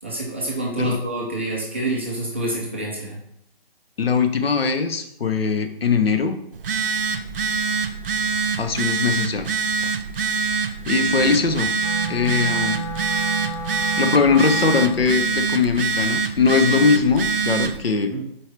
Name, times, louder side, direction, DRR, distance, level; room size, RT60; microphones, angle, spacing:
voice 1, 0.0-3.2 18.1-18.2, right 2 dB, 15° right, -4 dB, 0.5 m, -27 dB
voice 2, 4.0-6.4 8.6-9.5 10.9-11.7 12.1-12.8 14.0-18.1, left 5 dB, 75° left, 7 dB, 1.0 m, -20 dB
Telephone, 6.5-17.8, right 5 dB, 65° right, 0.6 m, -24 dB
Wind instrument woodwind instrument, 11.7-15.1, right 1 dB, 25° left, 0.8 m, -32 dB
6.5 x 4.6 x 3.3 m, 0.75 s
hypercardioid pair, 160°, 30 cm